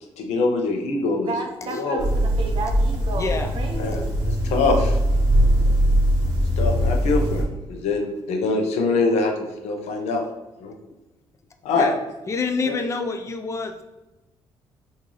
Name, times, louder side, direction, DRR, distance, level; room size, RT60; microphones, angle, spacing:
voice 1, 0.2-1.3 1.7-2.0 3.8-4.0 4.3-5.0 6.6-7.4 7.7-8.0 8.3-10.2 10.6-10.7 11.6-11.9 12.7-12.8, left 3 dB, 85° left, 2 dB, 0.7 m, -23 dB
voice 2, 1.2-4.2, right 3 dB, 55° right, 3 dB, 0.6 m, -32 dB
sound 1, 2.0-7.4, equal, 30° right, 1.3 m, -21 dB
voice 3, 3.2-3.5 11.7-12.0 12.3-13.9, left 4 dB, 25° left, 5 dB, 0.5 m, -27 dB
3.1 x 2.7 x 3.8 m, 1.0 s
cardioid pair, 85°, 11 cm